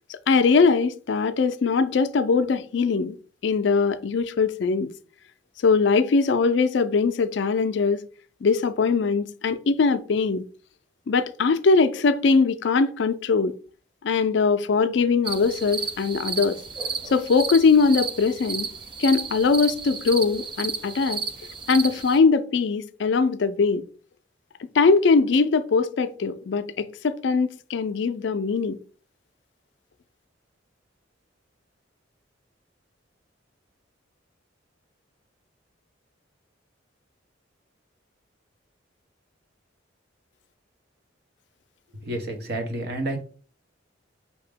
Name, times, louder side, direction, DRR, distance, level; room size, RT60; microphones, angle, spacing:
voice 1, 0.1-3.2 3.4-4.9 5.6-8.0 8.4-10.4 11.1-13.5 14.0-16.6 17.1-18.7 19.0-21.2 21.7-23.8 24.7-28.8, left 4 dB, 60° left, 0.4 m, -21 dB
sound 1, 15.3-22.2, right 5 dB, 25° right, 0.4 m, -32 dB
voice 2, 41.9-43.2, right 1 dB, 55° right, 1.0 m, -30 dB
5.4 x 2.8 x 3.4 m
head